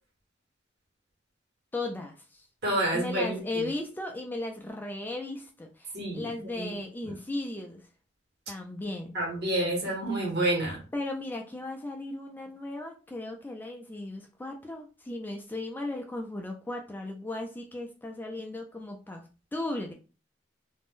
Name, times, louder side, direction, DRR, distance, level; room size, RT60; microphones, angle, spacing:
voice 1, 1.7-2.5 2.9-7.9 8.5-9.2 10.9-19.9, left 2 dB, 10° left, 2 dB, 0.3 m, -36 dB
voice 2, 2.6-3.6 5.9-6.3 6.5-6.8 7.0-7.1 9.1-10.8, right 1 dB, 60° right, -1 dB, 1.2 m, -29 dB
2.5 x 2.1 x 3.5 m, 0.35 s
head